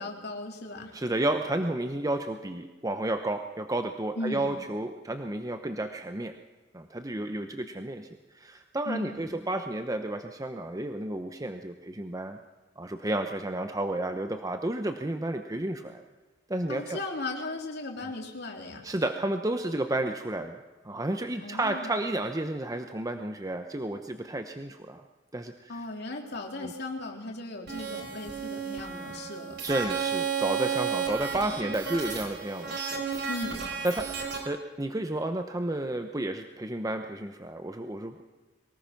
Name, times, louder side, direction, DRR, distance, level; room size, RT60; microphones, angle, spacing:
voice 1, 0.0-1.0 4.1-4.5 8.8-9.4 16.7-18.9 21.4-22.1 25.7-29.6 33.3-33.7, left 2 dB, 60° left, 2 dB, 3.4 m, -37 dB
voice 2, 0.9-6.4 6.7-8.1 8.3-12.4 12.8-16.0 16.5-17.0 18.0-18.1 18.8-25.0 25.3-25.8 26.6-26.7 29.6-33.0 33.8-34.1 34.5-38.2, right 1 dB, 20° right, 7 dB, 0.9 m, -31 dB
sound 1, 27.7-34.4, right 6 dB, 65° right, 4.2 m, -33 dB
23.5 x 19.5 x 5.9 m, 1.2 s
head